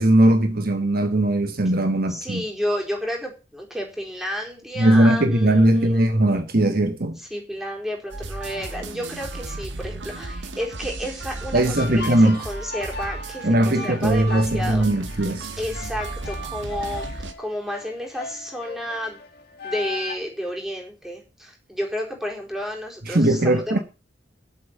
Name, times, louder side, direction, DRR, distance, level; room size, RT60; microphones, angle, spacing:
voice 1, 0.0-2.4 4.8-7.2 11.5-12.4 13.4-15.5 23.1-23.8, right 1 dB, 55° right, 1.3 m, -19 dB
voice 2, 2.1-6.3 7.3-14.9 15.6-17.1 17.4-19.2 19.6-23.8, equal, ahead, 4.5 m, -31 dB
sound 1, 8.1-17.3, right 2 dB, 80° right, 1.7 m, -34 dB
sound 2, 11.7-20.1, left 4 dB, 60° left, 2.3 m, -38 dB
8.6 x 7.9 x 9.1 m
head